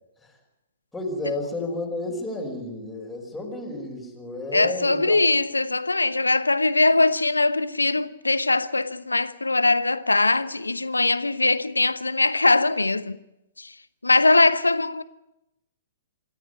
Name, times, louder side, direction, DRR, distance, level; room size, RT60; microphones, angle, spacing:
voice 1, 0.9-5.2, left 2 dB, 5° left, 5.3 m, -31 dB
voice 2, 4.5-13.2 13.6-13.7 14.0-15.0, left 2 dB, 85° left, 1.0 m, -21 dB
25.5 x 13.5 x 9.2 m
figure-of-eight pair, 115°, 0 cm